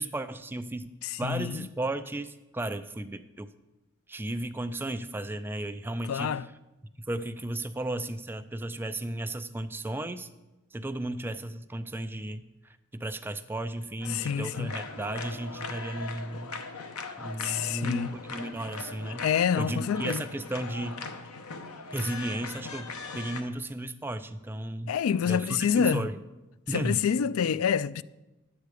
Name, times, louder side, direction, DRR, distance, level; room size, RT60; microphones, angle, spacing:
voice 1, 0.0-0.9 1.2-3.5 4.1-6.5 7.0-10.3 10.7-12.4 12.9-16.6 17.2-19.3 19.6-21.1 21.9-25.0 25.2-26.2 26.7-27.1, right 1 dB, 10° right, 0.3 m, -34 dB
voice 2, 1.0-1.7 6.1-6.4 14.1-14.7 17.4-18.1 19.2-20.2 24.9-26.1 26.7-28.0, left 7 dB, 70° left, 0.3 m, -27 dB
sound 1, 14.0-23.4, left 4 dB, 90° left, 0.9 m, -40 dB
10.5 x 8.0 x 4.9 m
head